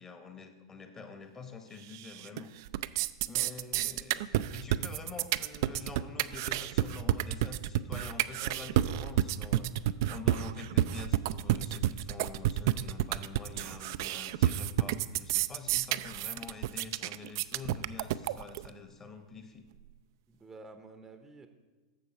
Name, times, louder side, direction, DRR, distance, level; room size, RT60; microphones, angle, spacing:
voice 1, 0.0-2.5 3.2-19.7, left 4 dB, 20° left, 7 dB, 1.1 m, -47 dB
sound 1, 1.9-2.4 2.7-18.7, right 13 dB, 50° right, 0.3 m, -30 dB
voice 2, 3.3-3.6 20.3-21.5, right 3 dB, 15° right, 7 dB, 0.7 m, -51 dB
10.5 x 7.0 x 4.1 m, 1.3 s
figure-of-eight pair, 95°, 3 cm